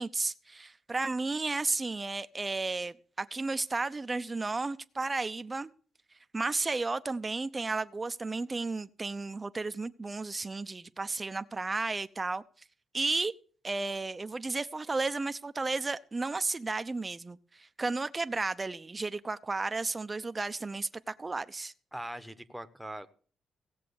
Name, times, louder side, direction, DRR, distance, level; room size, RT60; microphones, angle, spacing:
voice 1, 0.0-5.7 6.3-12.4 12.9-13.3 13.6-21.7, right 3 dB, 20° right, 0.7 m, -33 dB
voice 2, 21.9-23.1, right 1 dB, ahead, 1.1 m, -41 dB
16.5 x 7.5 x 7.1 m
cardioid pair, 105°, 0 cm